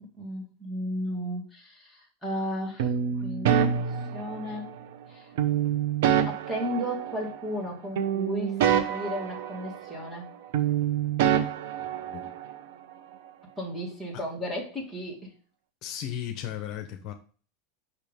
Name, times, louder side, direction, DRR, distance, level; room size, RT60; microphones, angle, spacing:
voice 1, 0.1-4.7 5.1-5.3 6.3-10.3 13.6-15.3, equal, 5° right, 2.5 m, -34 dB
sound 1, 2.8-4.8 5.4-7.7 8.0-10.3 10.5-12.6, right 9 dB, 70° right, 0.9 m, -27 dB
voice 2, 11.9-12.3 15.8-17.1, left 10 dB, 45° left, 1.0 m, -36 dB
6.5 x 5.9 x 3.6 m
supercardioid pair, 135°, 0 cm